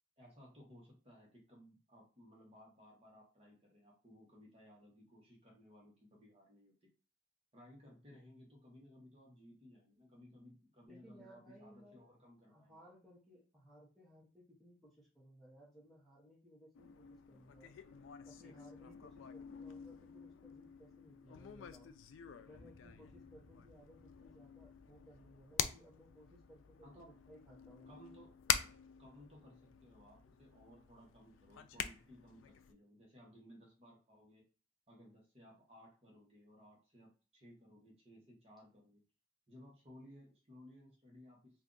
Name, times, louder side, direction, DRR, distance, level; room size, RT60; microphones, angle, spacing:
voice 1, 0.2-6.9 7.5-12.8 26.8-27.1 27.9-28.3 29.0-34.4 34.9-39.0 39.5-41.6, equal, 30° right, -3 dB, 1.0 m, -60 dB
voice 2, 10.9-12.1 12.5-17.7 18.2-21.9 22.4-27.9, equal, ahead, -6 dB, 0.9 m, -61 dB
sound 1, 16.7-32.7, left 9 dB, 80° left, 0.3 m, -45 dB
sound 2, 22.4-28.6, equal, 45° left, 1.0 m, -68 dB
2.6 x 2.4 x 3.7 m, 0.35 s
head